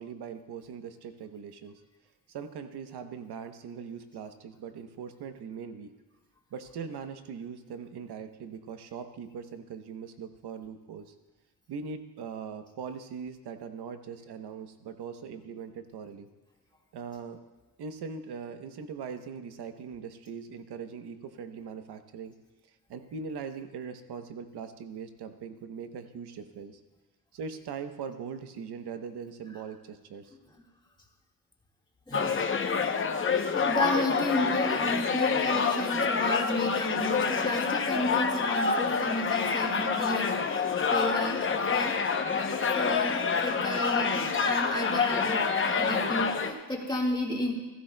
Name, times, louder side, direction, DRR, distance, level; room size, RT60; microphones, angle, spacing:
voice 1, 0.0-1.8 2.3-5.9 6.5-11.1 11.7-16.3 16.9-17.4 17.8-22.3 22.9-26.8 27.3-30.3, right 6 dB, 70° right, 8 dB, 0.9 m, -41 dB
sound 1, 32.1-46.5, left 5 dB, 30° left, 0.7 m, -27 dB
voice 2, 32.1-32.6 33.5-42.3 42.8-47.5, left 1 dB, 10° left, -2 dB, 1.7 m, -33 dB
15.5 x 15.0 x 2.2 m, 1.2 s
wide cardioid pair, 135°, 40 cm